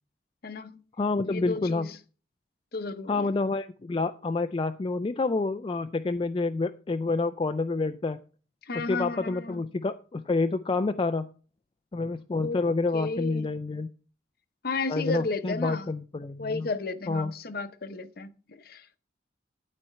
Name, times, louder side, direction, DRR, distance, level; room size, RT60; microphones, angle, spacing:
voice 1, 0.4-0.8 1.3-2.0 2.7-3.3 8.6-9.6 12.4-12.6 12.9-13.5 14.6-15.9 16.4-19.0, left 3 dB, 50° left, 0.7 m, -33 dB
voice 2, 1.0-1.9 3.1-8.2 8.7-11.3 11.9-13.9 14.9-16.7 17.1-17.3, left 3 dB, 25° left, 0.3 m, -28 dB
12.0 x 4.2 x 5.6 m
head